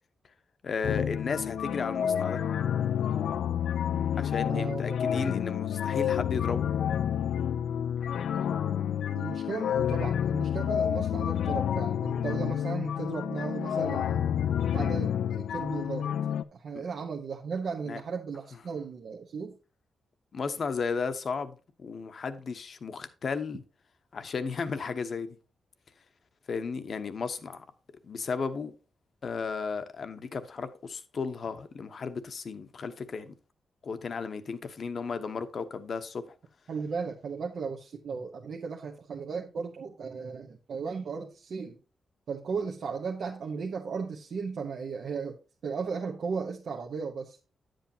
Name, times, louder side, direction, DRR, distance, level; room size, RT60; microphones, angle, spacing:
voice 1, 0.6-2.4 4.2-6.7 16.7-16.8 17.9-18.0 20.3-23.6 24.1-25.4 26.5-27.6 28.0-28.7 29.2-33.3 33.8-36.2, left 5 dB, 45° left, 0.9 m, -34 dB
sound 1, 0.8-16.4, left 9 dB, 80° left, 0.5 m, -29 dB
voice 2, 4.5-5.0 9.1-14.4 14.7-16.1 16.5-19.6 36.7-41.8 42.3-45.4 45.6-47.4, right 5 dB, 60° right, 1.0 m, -36 dB
10.0 x 7.7 x 2.8 m
wide cardioid pair, 140°, 0 cm